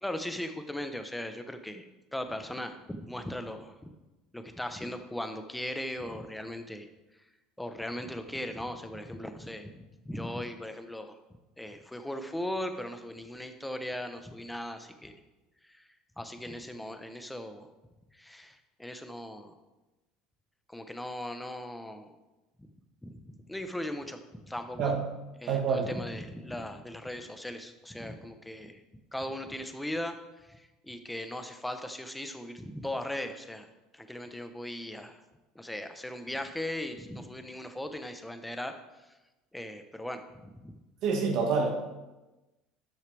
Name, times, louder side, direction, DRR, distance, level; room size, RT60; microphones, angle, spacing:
voice 1, 0.0-3.9 4.3-6.9 7.1-7.2 7.6-11.2 11.6-15.1 15.6-15.9 16.2-17.7 18.1-19.5 20.7-22.1 23.0-25.0 25.4-28.8 29.1-33.7 33.9-35.2 35.5-39.1 39.5-40.8, left 1 dB, 5° left, 8 dB, 0.9 m, -38 dB
voice 2, 25.5-25.9 41.0-41.7, right 5 dB, 60° right, 2 dB, 1.7 m, -27 dB
12.5 x 6.4 x 3.5 m, 1.1 s
supercardioid pair, 105°, 0 cm